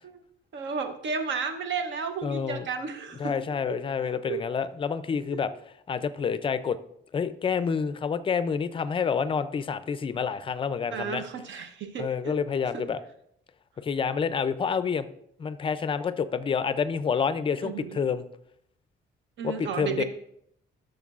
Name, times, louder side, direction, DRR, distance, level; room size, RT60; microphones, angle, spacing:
voice 1, 0.5-3.3 3.7-3.8 4.3-4.4 5.3-5.4 10.9-12.4 12.7-12.8 17.6-18.0 19.4-20.0, right 5 dB, 70° right, 7 dB, 0.7 m, -33 dB
voice 2, 2.2-2.7 3.2-5.5 5.9-6.8 7.1-11.2 12.0-13.0 13.8-15.1 15.4-18.2 19.4-20.0, left 6 dB, 25° left, 13 dB, 0.4 m, -28 dB
12.0 x 6.6 x 2.4 m, 0.73 s
cardioid pair, 155°, 20 cm